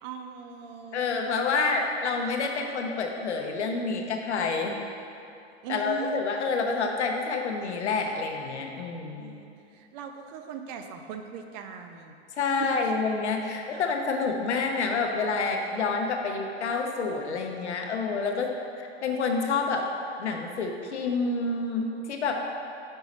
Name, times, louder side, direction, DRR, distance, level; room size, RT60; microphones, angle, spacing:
voice 1, 0.0-1.1 1.5-1.8 5.6-6.2 9.1-9.5 9.7-12.1 12.6-12.9 13.7-13.8, right 7 dB, 40° right, 5 dB, 0.5 m, -39 dB
voice 2, 0.9-4.8 5.7-9.3 12.4-18.5 18.8-19.9 20.2-22.3, left 4 dB, 85° left, 2 dB, 0.8 m, -28 dB
5.4 x 4.7 x 4.1 m, 2.6 s
hypercardioid pair, 115°, 33 cm